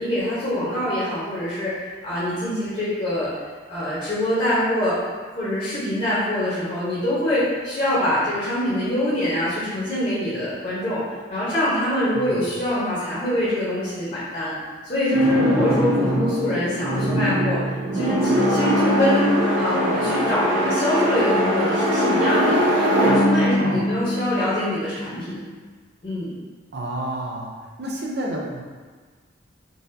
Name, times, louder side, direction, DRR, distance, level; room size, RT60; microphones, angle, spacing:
voice 1, 0.0-3.3 3.7-5.0 5.4-11.0 11.3-14.5 14.8-17.6 17.9-19.3 19.5-25.4 26.0-26.3, left 1 dB, 40° left, -11 dB, 1.0 m, -24 dB
sound 1, 15.1-25.1, equal, 90° right, 1.3 m, -21 dB
voice 2, 26.7-27.5 27.8-28.6, right 1 dB, 55° right, -1 dB, 0.5 m, -30 dB
3.9 x 2.5 x 2.6 m, 1.5 s
head